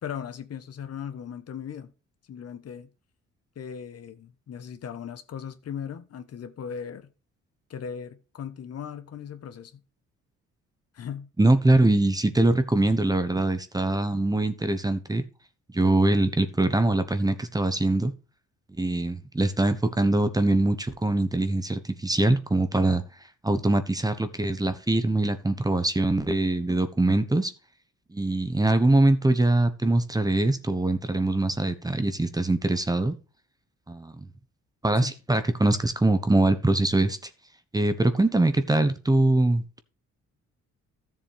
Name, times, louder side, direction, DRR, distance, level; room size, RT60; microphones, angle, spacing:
voice 1, 0.0-1.9 2.3-2.9 3.5-7.1 7.7-9.8 10.9-11.3 35.0-35.1, left 8 dB, 55° left, 1.2 m, -38 dB
voice 2, 11.4-15.2 15.7-18.1 18.8-23.0 23.4-27.5 28.1-33.2 33.9-34.3 34.8-37.3 37.7-39.8, right 2 dB, 10° right, 1.1 m, -23 dB
13.5 x 7.4 x 3.5 m
cardioid pair, 90°, 30 cm